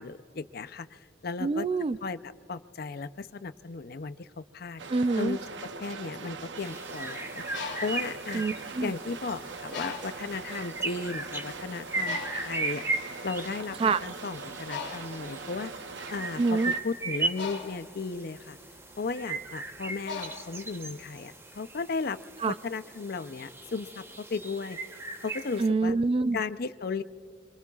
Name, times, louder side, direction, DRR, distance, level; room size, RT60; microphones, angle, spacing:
voice 1, 0.0-1.7 2.0-4.8 5.2-5.4 5.8-7.4 7.8-8.4 8.8-12.9 13.2-15.7 16.1-18.6 19.0-22.2 22.5-24.8 25.2-26.0 26.3-27.0, left 4 dB, 55° left, 12 dB, 0.6 m, -35 dB
voice 2, 1.4-2.0 4.9-5.4 8.3-8.9 13.8-14.0 16.4-16.7 22.4-22.5 25.6-26.4, right 3 dB, 30° right, 15 dB, 0.3 m, -26 dB
sound 1, 4.8-16.8, right 4 dB, 75° right, 0.8 m, -42 dB
sound 2, 6.6-25.7, right 3 dB, 15° right, 1.0 m, -37 dB
Bird, 7.4-9.1 9.7-10.4 11.0-11.2 11.4-21.2, left 5 dB, 80° left, 2.2 m, -42 dB
25.5 x 23.0 x 2.4 m, 2.2 s
head